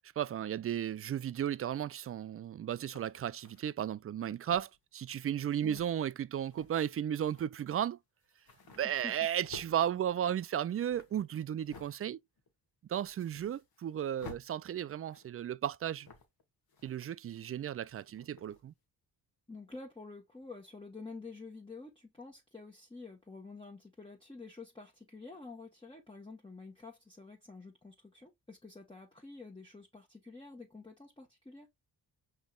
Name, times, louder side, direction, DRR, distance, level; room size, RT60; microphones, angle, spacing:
voice 1, 0.2-8.0 8.8-12.2 12.9-16.1 16.8-18.7, right 10 dB, 35° right, 0.4 m, -34 dB
sound 1, 2.0-2.1 2.8-3.7 4.4-4.9 5.5-5.9 6.4-6.9 7.2-7.5 7.8-7.9 8.2-9.7 10.3-12.0 12.4-12.5 12.9-13.9 14.2-14.4 15.0-15.5 16.0-16.4 16.7-17.6 18.0-18.6, left 4 dB, 55° left, 1.5 m, -54 dB
voice 2, 8.8-9.1 19.5-31.7, left 3 dB, 10° left, 1.3 m, -49 dB
5.2 x 3.3 x 2.4 m
supercardioid pair, 40°, 44 cm